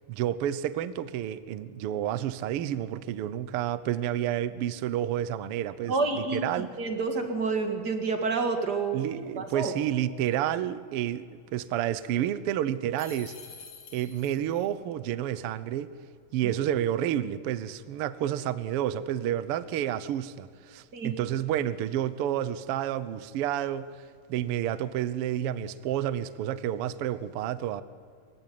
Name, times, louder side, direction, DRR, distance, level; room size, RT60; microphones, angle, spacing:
voice 1, 0.1-6.7 8.9-13.4 13.9-15.9 16.3-23.9 24.3-27.8, right 11 dB, 85° right, 15 dB, 1.2 m, -30 dB
voice 2, 5.9-6.4 6.8-9.1 9.4-9.7 16.4-16.5 20.9-21.1, right 4 dB, 35° right, 5 dB, 2.1 m, -28 dB
sound 1, 13.0-14.7, left 5 dB, 50° left, 2.9 m, -47 dB
24.0 x 16.0 x 9.4 m, 2.1 s
omnidirectional pair, 3.8 m